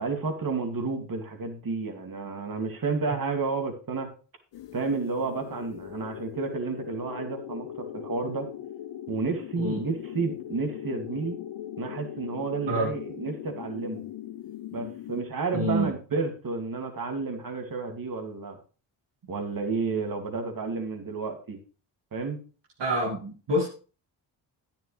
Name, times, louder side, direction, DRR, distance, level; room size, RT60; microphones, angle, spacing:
voice 1, 0.0-4.1 4.7-8.5 9.1-11.4 11.8-14.1 14.7-18.6 19.3-21.6 22.1-22.4, right 4 dB, 45° right, 4 dB, 2.5 m, -31 dB
sound 1, 4.5-15.2, left 11 dB, 65° left, 0.7 m, -40 dB
voice 2, 15.5-15.9 22.8-23.7, equal, 60° right, -1 dB, 2.1 m, -27 dB
10.5 x 9.5 x 3.3 m, 0.37 s
supercardioid pair, 55°, 47 cm